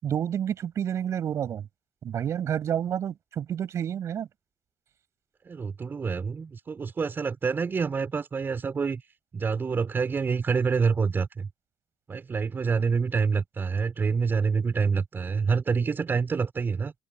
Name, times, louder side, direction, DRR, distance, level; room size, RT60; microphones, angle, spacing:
voice 1, 0.0-1.7 2.0-4.3, right 9 dB, 60° right, 7.3 m, -29 dB
voice 2, 5.4-9.0 9.3-11.5 12.1-16.9, right 5 dB, 40° right, 5.1 m, -27 dB
hypercardioid pair, 60°, 6 cm